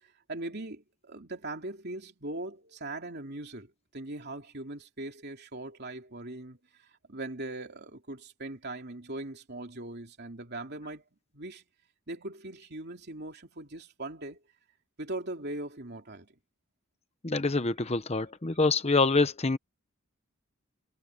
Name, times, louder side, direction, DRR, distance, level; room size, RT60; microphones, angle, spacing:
voice 1, 0.0-11.0 11.3-11.6 12.1-14.4 15.0-16.3, right 2 dB, 50° right, 3.1 m, -40 dB
voice 2, 17.2-19.6, left 3 dB, 30° left, 0.9 m, -26 dB
head